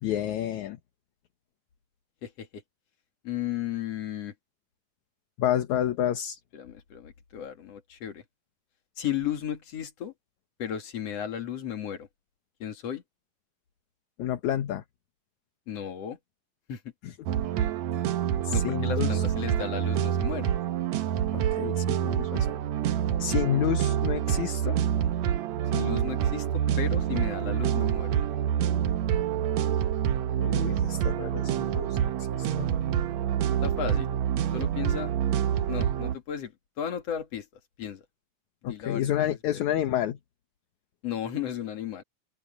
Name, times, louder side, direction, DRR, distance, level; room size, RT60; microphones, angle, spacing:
voice 1, 0.0-0.8 5.4-6.4 14.2-14.8 17.0-17.1 18.4-19.2 21.3-22.6 23.2-24.8 30.4-32.7 38.6-40.2, left 11 dB, 65° left, 2.3 m, -29 dB
voice 2, 2.2-2.6 3.2-4.3 6.5-8.2 9.0-10.1 10.6-12.1 12.6-13.0 15.7-16.2 16.7-16.8 18.5-20.6 25.7-28.1 33.6-35.1 35.7-36.5 36.8-37.5 37.8-38.0 38.7-39.6 41.0-42.0, left 9 dB, 50° left, 3.0 m, -34 dB
sound 1, 17.3-36.2, right 9 dB, 65° right, 1.9 m, -27 dB
open air
omnidirectional pair, 4.0 m